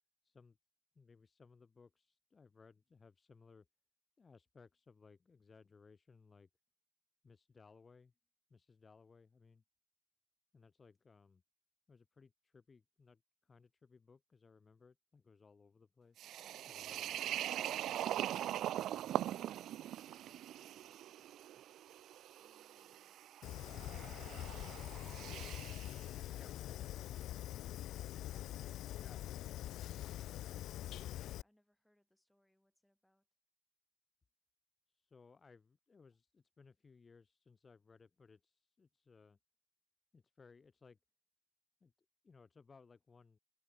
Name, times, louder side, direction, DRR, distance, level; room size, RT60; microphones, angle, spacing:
voice 1, 0.2-0.6 0.9-3.7 4.2-6.5 7.2-8.1 8.5-9.6 10.5-11.4 11.9-16.3 16.7-17.4 25.3-25.5 26.3-27.4 29.0-29.2 34.9-39.4 40.1-41.0 41.8-41.9 42.2-43.4, left 4 dB, 20° left, 1.5 m, -63 dB
sound 1, 16.2-26.0, right 12 dB, 60° right, 0.3 m, -42 dB
voice 2, 18.7-21.7 22.4-23.9 30.1-33.3, left 1 dB, 5° left, 3.6 m, -75 dB
Fire, 23.4-31.4, left 13 dB, 70° left, 0.3 m, -44 dB
cardioid pair, 175°, 0 cm